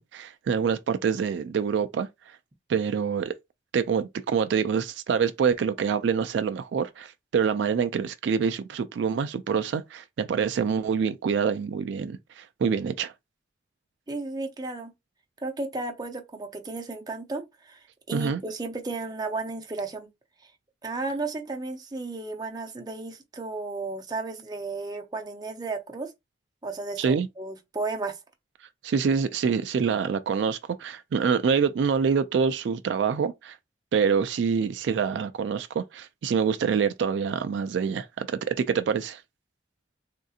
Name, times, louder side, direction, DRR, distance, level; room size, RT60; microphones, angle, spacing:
voice 1, 0.0-2.4 2.7-3.3 3.7-13.1 18.1-18.4 27.0-27.3 28.8-33.6 33.9-39.2, right 6 dB, 75° right, 0.3 m, -26 dB
voice 2, 14.1-14.9 15.4-20.1 20.8-26.1 26.6-28.2, right 3 dB, 20° right, 0.6 m, -34 dB
3.6 x 2.7 x 2.4 m
head